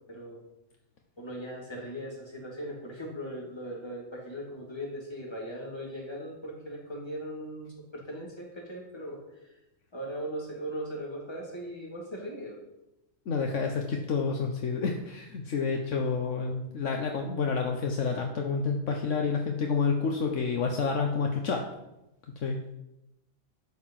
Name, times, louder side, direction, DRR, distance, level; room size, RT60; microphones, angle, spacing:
voice 1, 0.1-0.4 1.2-9.5 9.9-12.6, equal, 20° left, -3 dB, 3.5 m, -39 dB
voice 2, 13.3-21.6 22.4-22.6, left 5 dB, 75° left, 2 dB, 1.4 m, -29 dB
12.0 x 7.9 x 5.8 m, 0.91 s
omnidirectional pair, 1.3 m